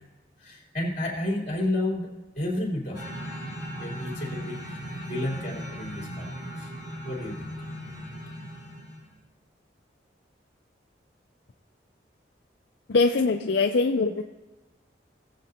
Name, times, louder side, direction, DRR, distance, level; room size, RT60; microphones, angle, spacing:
voice 1, 0.4-2.1 2.3-3.1 3.8-6.3 6.6-6.7 7.0-7.5, left 1 dB, 40° left, -2 dB, 3.2 m, -31 dB
sound 1, 2.9-9.1, equal, 20° right, 3.5 m, -37 dB
voice 2, 12.9-14.2, left 3 dB, 70° left, 4 dB, 0.5 m, -22 dB
18.5 x 7.5 x 2.8 m, 1.1 s
head